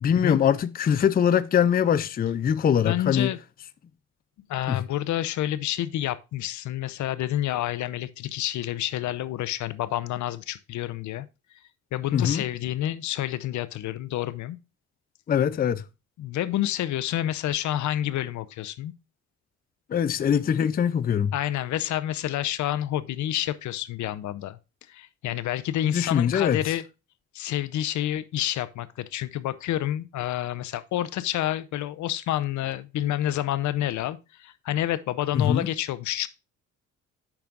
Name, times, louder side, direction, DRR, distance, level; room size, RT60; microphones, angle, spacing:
voice 1, 0.0-3.3 4.7-4.8 12.1-12.4 15.3-15.8 19.9-21.3 25.9-26.6 35.3-35.7, left 8 dB, 30° left, 0.4 m, -22 dB
voice 2, 2.8-3.4 4.5-11.3 11.9-14.6 16.2-18.9 21.3-24.6 24.9-26.8 27.3-36.3, left 13 dB, 75° left, 0.6 m, -29 dB
8.7 x 6.0 x 2.5 m
cardioid pair, 90°, 30 cm